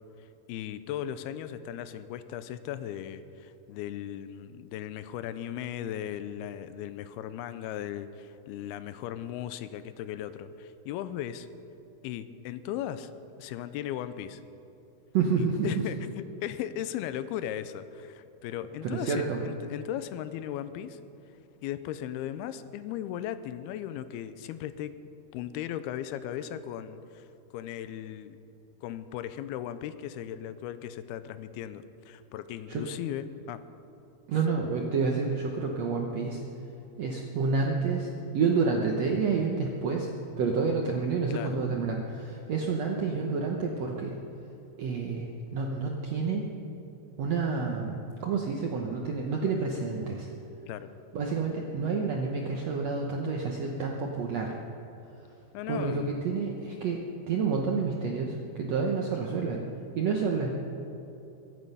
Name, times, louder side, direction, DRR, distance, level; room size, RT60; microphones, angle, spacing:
voice 1, 0.2-11.5 12.0-13.1 13.4-14.4 15.4-21.0 21.6-24.9 25.3-27.3 27.5-28.4 28.8-33.6 41.3-41.6 50.7-50.9 55.5-56.2, left 11 dB, 90° left, 13 dB, 2.6 m, -37 dB
voice 2, 15.1-15.8 18.8-19.4 32.7-32.8 34.3-36.4 37.0-40.1 40.4-44.2 44.8-46.5 47.2-50.3 51.1-54.5 55.7-57.0 57.3-59.7 60.0-60.5, right 4 dB, 75° right, 0 dB, 1.5 m, -29 dB
23.0 x 9.4 x 5.5 m, 2.9 s
omnidirectional pair, 4.4 m